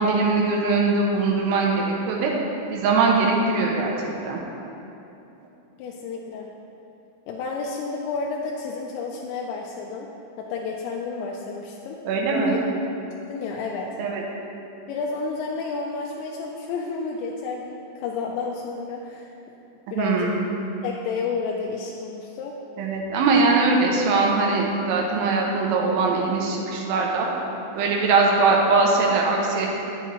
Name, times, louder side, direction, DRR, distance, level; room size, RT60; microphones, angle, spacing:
voice 1, 0.0-2.3 2.7-4.0 4.2-4.4 12.0-12.6 14.0-14.2 19.9-20.4 22.8-27.3 27.8-29.7, right 3 dB, 85° right, -1 dB, 3.3 m, -21 dB
voice 2, 5.8-6.5 7.3-10.1 10.4-12.0 12.3-12.6 13.3-14.0 14.9-19.3 19.9-20.3 20.8-22.6, left 4 dB, 80° left, -1 dB, 2.7 m, -31 dB
9.2 x 7.9 x 3.0 m, 2.8 s
omnidirectional pair, 5.4 m